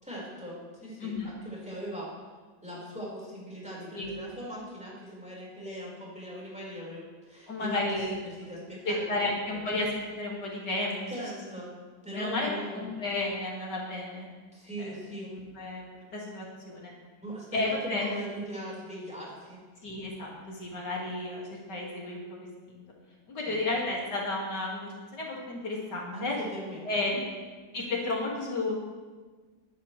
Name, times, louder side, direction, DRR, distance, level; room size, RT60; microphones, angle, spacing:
voice 1, 0.0-2.1 2.6-9.4 11.1-11.7 12.0-13.0 14.5-15.3 17.2-19.6 23.4-23.6 26.1-26.8, equal, 5° right, -6 dB, 4.9 m, -40 dB
voice 2, 1.0-1.3 3.9-4.1 7.5-8.2 8.8-9.9 10.2-11.1 12.1-14.3 14.8-15.0 15.3-16.9 17.5-18.1 19.8-22.8 23.3-26.4 26.8-27.2 27.7-28.8, left 2 dB, 75° left, -3 dB, 2.9 m, -32 dB
22.0 x 11.0 x 3.3 m, 1.4 s
omnidirectional pair, 1.8 m